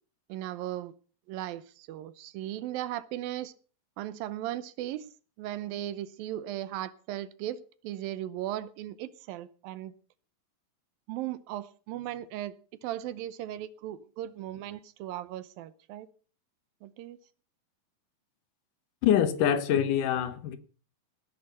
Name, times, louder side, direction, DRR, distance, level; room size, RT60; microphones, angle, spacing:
voice 1, 0.3-0.9 1.3-3.5 4.0-5.1 5.4-9.9 11.1-12.5 12.8-16.1 16.8-17.2, right 13 dB, 80° right, 2.6 m, -37 dB
voice 2, 19.0-20.6, left 9 dB, 70° left, 2.6 m, -25 dB
18.5 x 10.5 x 5.5 m
omnidirectional pair, 4.1 m